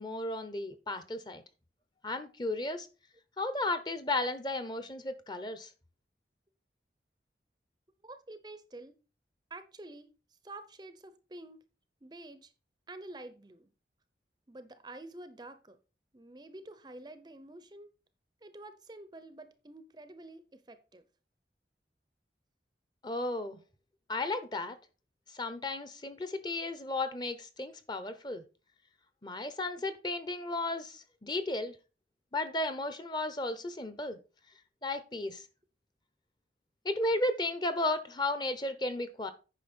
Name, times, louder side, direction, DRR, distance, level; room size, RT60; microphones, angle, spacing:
voice 1, 0.0-1.4 2.0-2.9 3.4-5.7 23.0-23.6 24.1-24.8 25.3-28.4 29.2-31.8 32.3-34.2 34.8-35.4 36.8-39.3, left 2 dB, 25° left, 0.9 m, -34 dB
voice 2, 8.0-9.0 9.5-10.1 10.4-11.6 12.0-12.5 12.9-13.7 14.5-15.8 16.1-17.9 18.4-21.0, right 2 dB, 25° right, 0.6 m, -48 dB
9.2 x 5.7 x 4.3 m
head